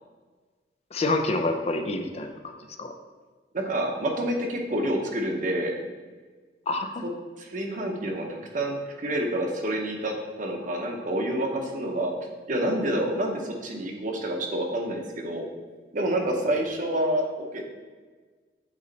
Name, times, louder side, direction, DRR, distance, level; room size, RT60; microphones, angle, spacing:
voice 1, 0.9-2.5 2.8-2.9 6.7-7.0, left 2 dB, 35° left, 6 dB, 0.5 m, -27 dB
voice 2, 3.5-5.8 7.0-7.1 7.4-12.1 12.5-15.4 15.9-17.6, right 1 dB, 50° right, 2 dB, 0.9 m, -28 dB
8.3 x 3.1 x 4.0 m, 1.4 s
head